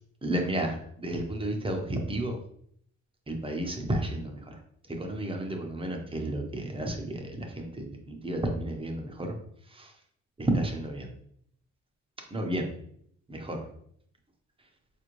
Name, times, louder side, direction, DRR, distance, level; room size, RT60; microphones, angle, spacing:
voice 1, 0.2-2.4 3.3-4.6 5.0-9.4 9.7-9.9 10.4-11.1 12.3-12.7 13.3-13.6, right 1 dB, 20° right, 2 dB, 0.7 m, -32 dB
4.2 x 2.5 x 3.0 m, 0.66 s
cardioid pair, 90°, 30 cm